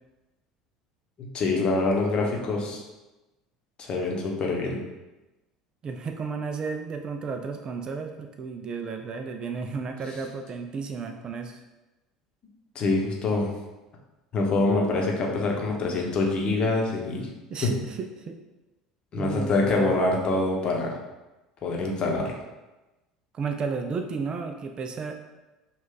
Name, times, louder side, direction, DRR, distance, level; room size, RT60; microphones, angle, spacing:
voice 1, 1.3-2.8 3.8-4.8 12.7-13.5 14.3-17.3 17.6-17.7 19.1-20.9 21.6-22.3, left 2 dB, 35° left, -1 dB, 0.9 m, -25 dB
voice 2, 5.8-11.6 17.5-18.4 19.2-20.0 23.3-25.1, right 5 dB, 30° right, 5 dB, 0.4 m, -33 dB
5.0 x 2.3 x 3.8 m, 1.1 s
figure-of-eight pair, 65°, 3 cm